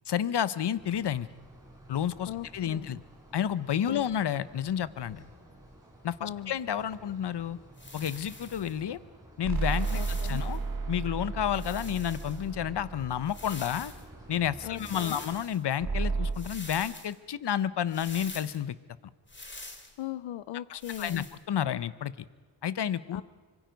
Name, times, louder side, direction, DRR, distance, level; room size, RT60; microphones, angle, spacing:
voice 1, 0.1-1.3 1.9-3.0 3.3-5.2 6.0-7.6 7.9-9.0 9.4-10.6 10.9-13.9 14.3-18.8 20.7-22.1 22.6-23.2, left 9 dB, 60° left, 17 dB, 0.9 m, -30 dB
sound 1, 0.8-15.4, right 1 dB, 10° right, 5.5 m, -51 dB
voice 2, 2.3-2.9 3.9-4.1 6.2-6.5 9.9-10.4 14.6-15.3 20.0-21.3 23.1-23.2, left 12 dB, 90° left, 16 dB, 0.6 m, -39 dB
sound 2, 7.8-8.7 9.6-10.6 11.5-12.4 13.2-14.0 14.7-15.6 16.3-17.1 17.9-18.6 19.3-20.0 20.8-21.4, left 2 dB, 25° left, 2.6 m, -45 dB
sound 3, 9.4-13.9 15.8-16.3, right 4 dB, 45° right, 2.2 m, -33 dB
25.0 x 23.5 x 5.2 m, 1.4 s
cardioid pair, 75°, 45 cm